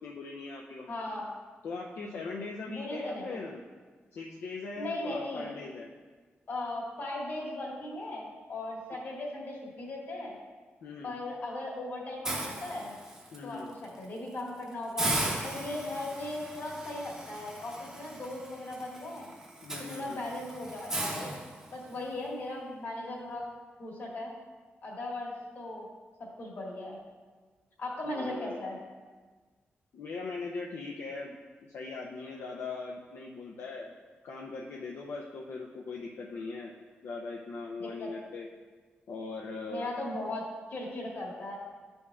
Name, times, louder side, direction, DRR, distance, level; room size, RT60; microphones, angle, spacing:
voice 1, 0.0-1.1 1.6-3.6 4.1-5.9 10.8-11.2 13.3-13.7 19.6-20.2 28.0-28.6 29.9-31.4 31.7-33.9 34.2-36.7 37.0-38.5 39.1-39.9, left 3 dB, 80° left, -1 dB, 0.5 m, -40 dB
voice 2, 0.9-1.3 2.7-3.4 4.8-5.5 6.5-10.3 11.0-13.0 13.4-19.3 19.8-21.3 21.7-23.5 23.8-24.3 24.8-25.9 26.2-27.0 27.8-28.8 37.8-38.1 39.7-40.4 40.7-41.6, left 2 dB, 60° left, -3 dB, 1.7 m, -38 dB
Hiss, 12.2-13.4 13.8-14.0 14.4-14.5 15.0-22.0, right 1 dB, 15° right, 0.8 m, -37 dB
11.0 x 5.3 x 2.4 m, 1.4 s
wide cardioid pair, 170°, 4 cm